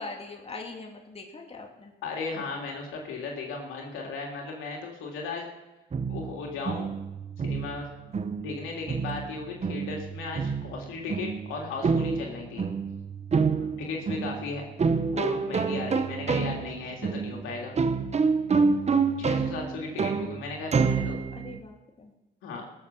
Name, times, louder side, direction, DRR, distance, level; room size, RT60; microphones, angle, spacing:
voice 1, 0.0-1.9 8.1-8.6 13.6-14.0 17.0-17.6 19.0-19.5 21.3-22.1, left 3 dB, 30° left, 1 dB, 2.3 m, -44 dB
voice 2, 2.0-5.5 6.1-6.9 7.4-7.9 8.4-12.6 13.8-14.6 15.1-17.8 19.2-21.2 22.4-22.7, left 4 dB, 90° left, 0 dB, 2.9 m, -36 dB
sound 1, 5.9-21.6, right 5 dB, 35° right, 0.9 m, -28 dB
19.5 x 7.2 x 7.0 m, 1.0 s
cardioid pair, 90°, 20 cm